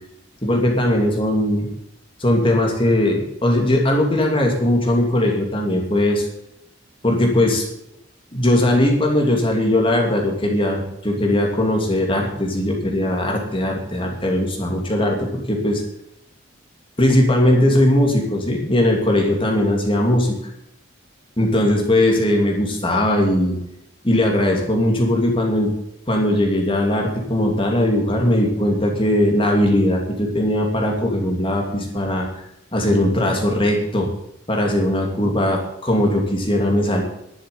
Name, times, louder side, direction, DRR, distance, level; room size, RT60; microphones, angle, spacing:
voice 1, 0.4-1.7 2.2-6.3 7.0-7.7 8.3-15.8 17.0-20.3 21.4-23.6 24.0-25.7 26.1-32.3 32.7-34.1 34.5-37.0, left 1 dB, 30° left, 1 dB, 2.8 m, -19 dB
11.5 x 9.5 x 8.5 m, 0.81 s
head